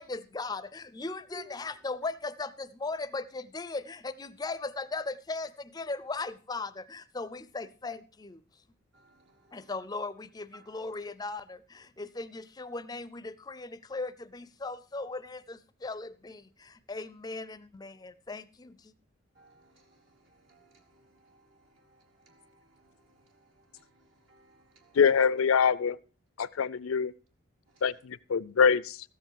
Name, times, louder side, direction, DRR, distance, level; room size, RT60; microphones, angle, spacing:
voice 1, 0.0-8.4 9.5-18.9, left 3 dB, 20° left, 0.4 m, -38 dB
voice 2, 8.9-9.7 10.5-11.0 19.3-25.0 27.7-28.0, right 4 dB, 70° right, 1.4 m, -58 dB
voice 3, 24.9-26.0 26.4-27.1 27.8-29.0, left 6 dB, 85° left, 0.5 m, -24 dB
14.0 x 7.8 x 4.6 m
head